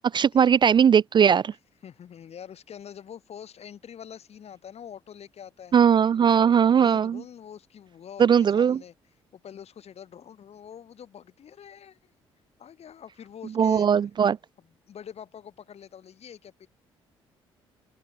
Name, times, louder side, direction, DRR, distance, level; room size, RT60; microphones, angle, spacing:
voice 1, 0.1-1.5 5.7-7.2 8.2-8.8 13.6-14.4, right 7 dB, 35° right, 0.4 m, -19 dB
voice 2, 1.8-5.7 6.4-8.9 9.3-12.0 12.6-13.9 14.6-16.7, left 8 dB, 55° left, 5.4 m, -45 dB
open air
figure-of-eight pair, 45°, 13 cm